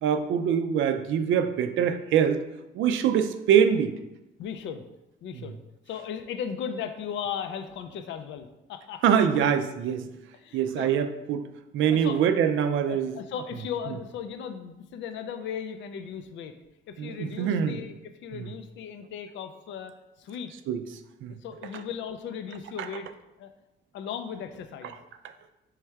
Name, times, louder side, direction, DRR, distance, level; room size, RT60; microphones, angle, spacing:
voice 1, 0.0-2.4 2.7-3.9 9.0-10.1 10.5-11.4 11.7-13.1 17.0-17.8 18.3-18.5 20.7-20.8 21.2-21.4, right 8 dB, 80° right, 9 dB, 0.4 m, -24 dB
voice 2, 4.4-4.9 5.2-5.6 5.9-9.4 10.3-10.9 11.9-12.2 12.8-16.5 16.9-19.9 20.2-20.5 21.4-23.1 23.4-23.5 23.9-25.0, left 7 dB, 70° left, 8 dB, 0.4 m, -37 dB
3.5 x 3.2 x 4.5 m, 0.95 s
cardioid pair, 90°, 20 cm